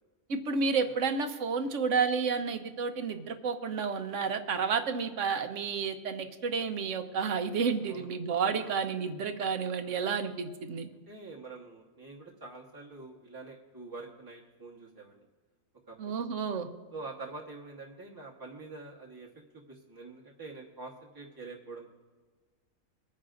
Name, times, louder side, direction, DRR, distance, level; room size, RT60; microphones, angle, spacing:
voice 1, 0.3-10.9 16.0-16.7, right 5 dB, 55° right, 7 dB, 1.2 m, -31 dB
voice 2, 7.9-8.2 8.5-8.8 10.9-15.2 15.9-16.2 16.9-19.3 19.5-21.9, right 3 dB, 15° right, -3 dB, 1.2 m, -46 dB
24.5 x 9.9 x 2.6 m, 1.4 s
omnidirectional pair, 1.6 m